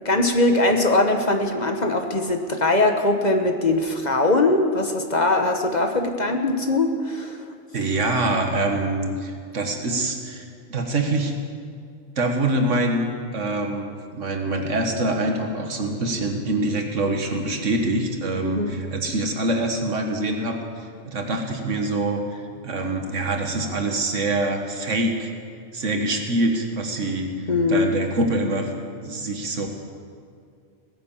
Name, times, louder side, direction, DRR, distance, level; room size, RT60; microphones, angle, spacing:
voice 1, 0.0-7.4 18.4-18.7 27.5-27.9, left 2 dB, 35° left, 4 dB, 1.2 m, -21 dB
voice 2, 7.7-10.4 10.7-11.3 12.2-13.1 13.3-20.6 21.1-22.2 22.6-25.3 25.7-27.3 27.7-28.7 29.0-29.7, right 2 dB, 80° right, 3 dB, 1.9 m, -24 dB
17.5 x 10.5 x 7.3 m, 2.2 s
omnidirectional pair, 1.3 m